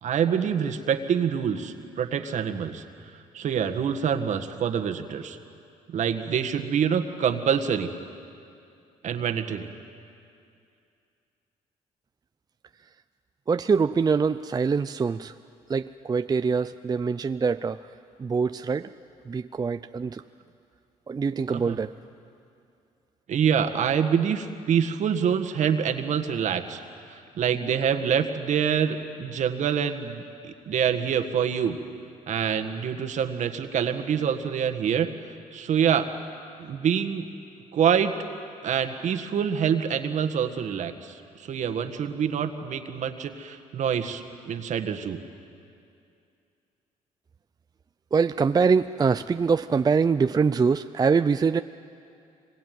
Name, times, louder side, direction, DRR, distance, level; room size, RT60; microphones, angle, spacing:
voice 1, 0.0-2.8 3.3-5.4 5.9-7.9 9.0-9.7 21.5-21.8 23.3-26.8 27.1-31.8 32.3-35.1 35.5-36.1 36.6-37.3 37.7-38.1 38.6-45.2, right 8 dB, 65° right, 6 dB, 1.7 m, -26 dB
voice 2, 13.5-15.3 15.7-17.9 18.2-18.9 19.3-20.2 21.1-21.9 48.1-51.6, right 5 dB, 30° right, 11 dB, 0.5 m, -24 dB
25.5 x 22.0 x 9.3 m, 2.5 s
cardioid pair, 75°, 13 cm